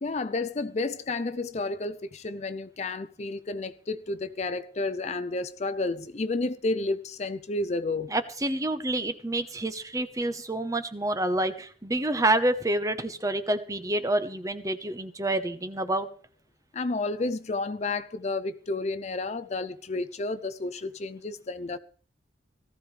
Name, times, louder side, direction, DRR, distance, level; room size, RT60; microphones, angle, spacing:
voice 1, 0.0-8.1 16.7-21.8, left 3 dB, 40° left, 0.5 m, -31 dB
voice 2, 8.1-16.1, right 1 dB, 20° right, 1.0 m, -28 dB
18.0 x 14.5 x 3.3 m
head